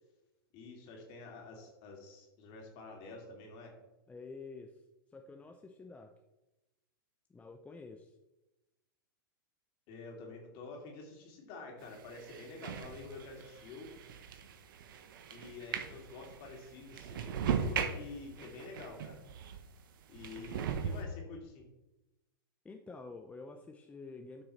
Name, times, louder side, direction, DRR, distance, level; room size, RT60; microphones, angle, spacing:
voice 1, 0.5-3.8 9.9-13.9 15.3-19.2 20.1-21.7, left 3 dB, 45° left, 1 dB, 2.8 m, -48 dB
voice 2, 4.1-4.7 5.1-6.1 7.3-8.1 22.6-24.4, left 3 dB, 10° left, 4 dB, 0.6 m, -49 dB
sound 1, 11.8-19.7 20.1-21.0, right 7 dB, 65° right, 1.0 m, -39 dB
11.5 x 6.1 x 3.2 m, 1.0 s
hypercardioid pair, 105°, 12 cm